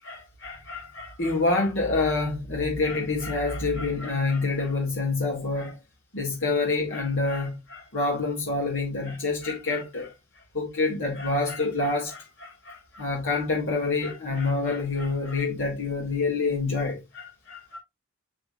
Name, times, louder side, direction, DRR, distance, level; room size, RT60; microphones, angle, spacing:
voice 1, 0.0-5.8 6.1-10.1 10.5-17.8, left 3 dB, 60° left, 2.3 m, -27 dB
7.6 x 6.5 x 2.5 m
head